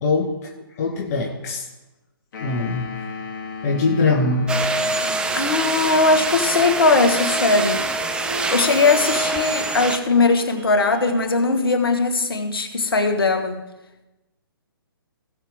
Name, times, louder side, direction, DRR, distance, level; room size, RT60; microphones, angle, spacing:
voice 1, 0.0-1.7 2.4-2.9 3.6-4.5 5.4-5.5, left 3 dB, 40° left, -1 dB, 1.7 m, -22 dB
sound 1, 2.3-5.7, left 4 dB, 55° left, 2.2 m, -35 dB
sound 2, 4.5-10.0, right 2 dB, 5° right, 0.7 m, -24 dB
voice 2, 5.3-7.9 8.5-13.6, left 3 dB, 70° left, 6 dB, 1.8 m, -19 dB
Harp, 6.6-12.0, right 1 dB, 35° right, 4.1 m, -37 dB
18.0 x 6.8 x 3.8 m, 1.0 s
figure-of-eight pair, 135°, 12 cm